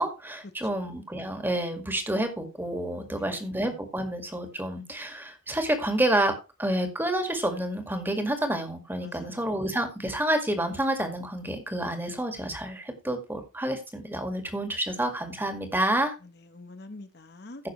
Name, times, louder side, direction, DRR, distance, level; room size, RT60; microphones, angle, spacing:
voice 1, 0.0-16.1, right 1 dB, 10° right, 2.0 m, -29 dB
voice 2, 3.1-3.4 9.0-9.5 16.2-17.6, left 2 dB, 55° left, 1.0 m, -46 dB
15.5 x 6.1 x 3.2 m
head